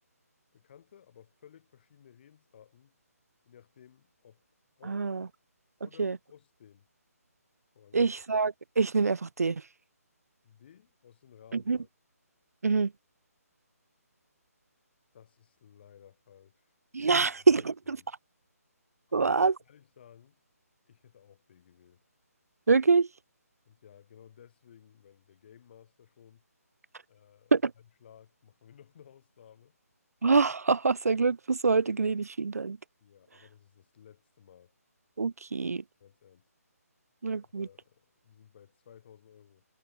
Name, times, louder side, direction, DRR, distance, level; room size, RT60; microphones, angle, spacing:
voice 1, 0.5-3.0 3.5-4.4 4.8-5.0 5.8-6.9 7.7-8.1 10.4-11.9 15.1-16.7 17.0-17.2 17.4-17.7 18.0-18.1 19.1-19.4 19.7-20.4 20.9-22.0 23.7-26.4 27.1-29.8 33.0-34.7 36.0-36.5 37.4-39.7, left 9 dB, 40° left, 5.4 m, -57 dB
voice 2, 4.9-5.3 6.0-6.2 7.9-9.6 11.5-11.8 12.6-12.9 16.9-18.0 19.1-19.5 22.7-23.1 27.5-27.7 30.2-32.8 35.2-35.8 37.2-37.7, right 4 dB, 70° right, 0.4 m, -25 dB
figure-of-eight pair, 145°, 9 cm